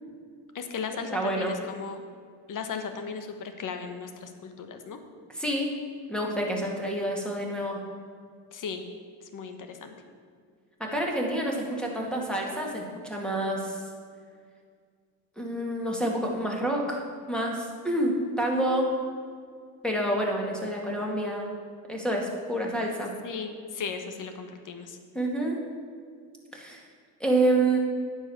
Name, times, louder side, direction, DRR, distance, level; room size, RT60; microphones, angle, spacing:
voice 1, 0.5-2.0 2.5-5.0 8.5-8.8 9.3-9.9 23.2-25.0, left 5 dB, 45° left, 7 dB, 1.3 m, -36 dB
voice 2, 1.1-1.5 5.3-5.7 6.1-7.8 10.8-13.8 15.4-17.0 17.3-18.9 19.8-21.5 21.9-23.1 25.1-25.6 26.5-26.8 27.2-27.8, right 1 dB, ahead, -1 dB, 2.3 m, -28 dB
9.3 x 5.6 x 7.1 m, 2.1 s
supercardioid pair, 80°, 45 cm